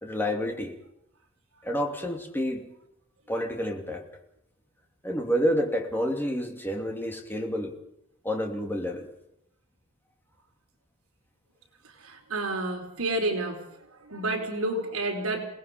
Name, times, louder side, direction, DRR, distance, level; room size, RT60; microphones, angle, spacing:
voice 1, 0.0-0.7 1.6-2.7 3.3-4.0 5.0-7.7 8.2-9.1, equal, 10° left, 2 dB, 2.8 m, -29 dB
voice 2, 12.0-13.6 13.9-15.5, right 2 dB, 70° right, 2 dB, 4.6 m, -30 dB
27.5 x 19.5 x 5.3 m, 0.77 s
head